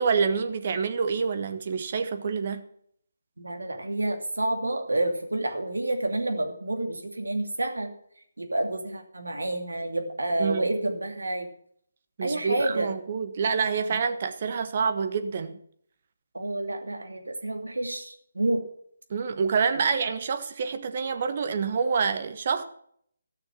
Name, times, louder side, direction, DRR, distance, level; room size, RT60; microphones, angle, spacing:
voice 1, 0.0-2.7 10.4-10.7 12.2-15.6 19.1-22.6, right 5 dB, 45° right, 1.3 m, -27 dB
voice 2, 3.4-7.9 8.4-11.5 12.2-12.9 13.9-14.0 16.3-18.6, right 2 dB, 85° right, 2.6 m, -29 dB
14.0 x 6.7 x 7.1 m
figure-of-eight pair, 150°, 0 cm